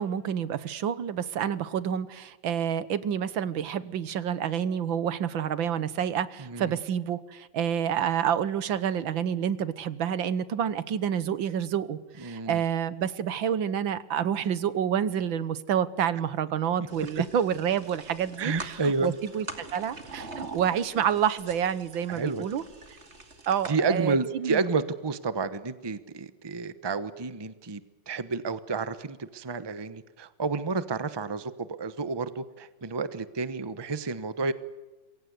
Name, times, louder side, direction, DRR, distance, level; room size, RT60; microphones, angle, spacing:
voice 1, 0.0-19.5 19.7-22.6 23.5-24.6, right 9 dB, 85° right, 15 dB, 1.9 m, -28 dB
voice 2, 6.4-6.8 12.2-12.6 17.2-17.3 18.4-19.1 22.1-22.5 23.7-34.5, right 4 dB, 20° right, 13 dB, 0.8 m, -30 dB
sound 1, 16.9-23.7, right 3 dB, 35° right, 2.6 m, -44 dB
27.5 x 22.5 x 8.2 m, 1.2 s
omnidirectional pair, 2.1 m